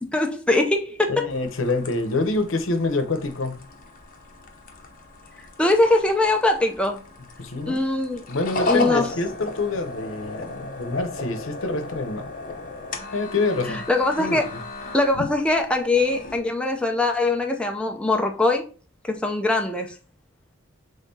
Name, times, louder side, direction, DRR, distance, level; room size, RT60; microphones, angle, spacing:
voice 1, 0.0-1.3 5.6-7.0 7.6-8.2 8.6-9.1 13.7-14.5 14.9-18.7 19.1-19.9, left 2 dB, 5° left, 0.5 m, -22 dB
voice 2, 1.1-3.6 7.4-7.8 8.3-12.3 13.1-13.9 14.2-14.6 15.2-15.3, left 3 dB, 75° left, 0.8 m, -26 dB
sound 1, 1.3-16.4, left 2 dB, 45° left, 0.8 m, -35 dB
5.5 x 3.6 x 2.7 m
head